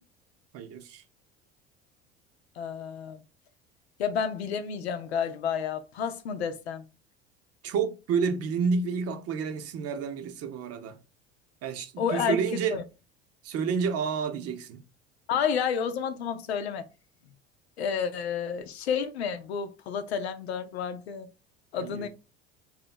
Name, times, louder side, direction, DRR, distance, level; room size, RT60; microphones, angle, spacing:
voice 1, 0.5-1.0 7.6-11.0 11.6-12.8 13.4-14.8 21.8-22.1, right 6 dB, 50° right, 0.8 m, -30 dB
voice 2, 2.6-3.2 4.0-6.8 12.0-12.8 15.3-16.9 17.8-21.3 21.7-22.1, left 7 dB, 90° left, 0.7 m, -30 dB
3.2 x 2.8 x 4.2 m
hypercardioid pair, 75°, 31 cm